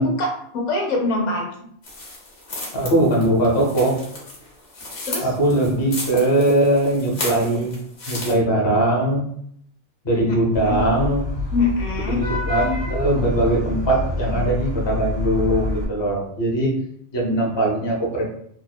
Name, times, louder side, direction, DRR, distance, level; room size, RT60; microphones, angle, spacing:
voice 1, 0.0-1.7 5.1-5.3 10.3-10.4 10.6-10.8 11.5-12.2, left 2 dB, 90° left, 1 dB, 1.0 m, -24 dB
sound 1, 1.8-8.3, left 2 dB, 65° left, 1.0 m, -34 dB
voice 2, 2.7-4.0 5.2-7.8 8.1-9.2 10.0-11.2 12.1-16.7 17.1-18.2, right 1 dB, 30° left, -2 dB, 0.5 m, -20 dB
Vehicle horn car horn honking / Traffic noise roadway noise, 10.5-15.8, left 2 dB, 35° right, 0.5 m, -27 dB
2.8 x 2.1 x 2.2 m, 0.68 s
omnidirectional pair, 1.2 m